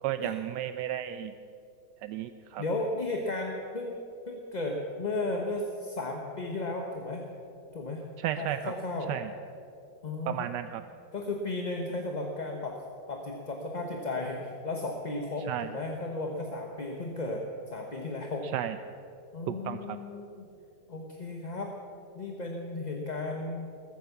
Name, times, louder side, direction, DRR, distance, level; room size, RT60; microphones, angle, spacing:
voice 1, 0.0-1.3 2.0-2.6 8.2-8.7 9.1-9.3 10.3-10.8 15.5-15.7 18.5-18.8 19.5-20.0, right 11 dB, 80° right, 10 dB, 1.2 m, -33 dB
voice 2, 2.6-4.0 4.3-7.2 7.7-8.0 8.4-9.1 10.0-10.5 11.1-12.8 13.1-18.5 19.3-20.5 20.9-21.7 22.1-23.7, left 2 dB, 30° left, 1 dB, 1.0 m, -34 dB
20.5 x 9.4 x 7.2 m, 2.7 s
omnidirectional pair, 1.9 m